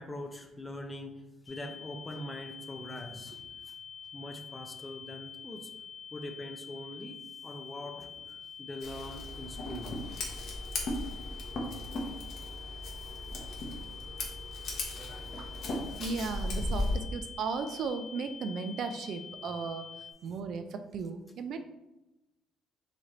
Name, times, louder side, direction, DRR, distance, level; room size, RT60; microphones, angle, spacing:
voice 1, 0.0-3.7 4.1-5.7 6.1-10.2 11.5-11.9, left 1 dB, 15° left, 5 dB, 0.5 m, -43 dB
sound 1, 1.5-20.1, left 7 dB, 80° left, 1.5 m, -47 dB
Scissors, 8.8-17.0, left 1 dB, 50° left, 0.9 m, -37 dB
voice 2, 16.0-19.9 20.2-21.6, right 5 dB, 55° right, 8 dB, 0.4 m, -36 dB
4.2 x 3.2 x 3.8 m, 0.99 s
cardioid pair, 150°, 0 cm